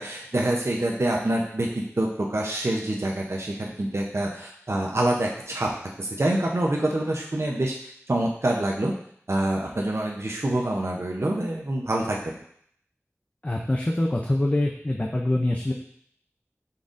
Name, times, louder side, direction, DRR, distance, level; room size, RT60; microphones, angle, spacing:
voice 1, 0.0-5.7 6.0-8.9 9.3-12.3, right 1 dB, 60° right, -1 dB, 0.6 m, -26 dB
voice 2, 13.4-15.7, left 1 dB, 30° left, 0 dB, 0.4 m, -24 dB
5.3 x 3.8 x 2.5 m, 0.65 s
wide cardioid pair, 40°, 5 cm